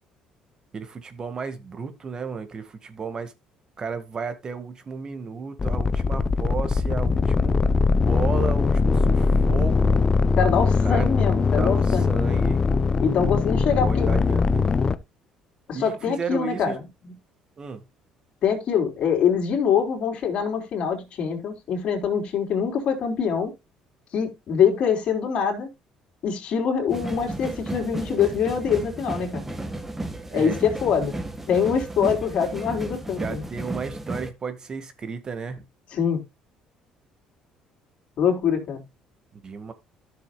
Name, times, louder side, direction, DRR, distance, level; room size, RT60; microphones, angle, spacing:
voice 1, 0.7-3.3 3.8-7.7 8.0-10.0 10.8-11.1 11.5-12.6 13.8-14.7 15.7-16.8 17.6-17.8 30.3-30.6 33.2-35.6 39.3-39.7, right 5 dB, 35° right, 1.9 m, -33 dB
sound 1, 5.6-15.0, left 4 dB, 30° left, 0.8 m, -21 dB
voice 2, 10.4-12.1 13.0-14.1 15.7-17.1 18.4-23.5 24.1-25.7 26.2-29.5 30.3-31.2 31.5-33.4 35.9-36.2 38.2-38.8, left 7 dB, 60° left, 3.7 m, -24 dB
sound 2, 26.9-34.3, right 2 dB, 10° right, 1.6 m, -33 dB
13.5 x 6.9 x 2.3 m
cardioid pair, 95°, 2 cm